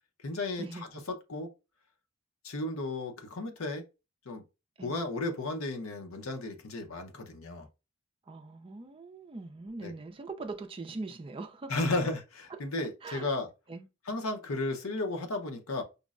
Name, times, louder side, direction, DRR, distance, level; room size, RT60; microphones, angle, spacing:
voice 1, 0.2-0.9 1.3-1.5 2.4-3.8 4.3-4.4 4.8-7.7 9.8-9.9 11.7-13.5 14.1-15.8, left 2 dB, 80° left, 0.8 m, -34 dB
voice 2, 8.3-11.7 12.8-13.3 13.7-13.9, right 3 dB, 25° right, 0.4 m, -41 dB
5.2 x 2.1 x 2.4 m
head